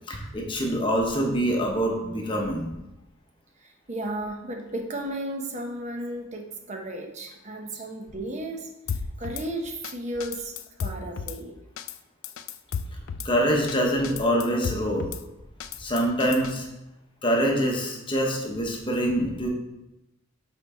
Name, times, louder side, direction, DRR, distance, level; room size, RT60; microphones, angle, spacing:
voice 1, 0.1-2.7 13.2-15.1 15.8-16.7 17.2-19.5, equal, 25° left, 0 dB, 1.0 m, -25 dB
voice 2, 3.6-8.7 9.2-11.6, right 1 dB, 35° right, 2 dB, 0.9 m, -34 dB
Drum kit / Snare drum, 8.9-9.5 9.8-9.9 10.2-11.4 11.8-12.0 12.2-13.3 13.7-13.8 14.0-15.2 15.6-16.5, left 6 dB, 75° left, 0.4 m, -33 dB
5.8 x 4.6 x 4.3 m, 0.93 s
head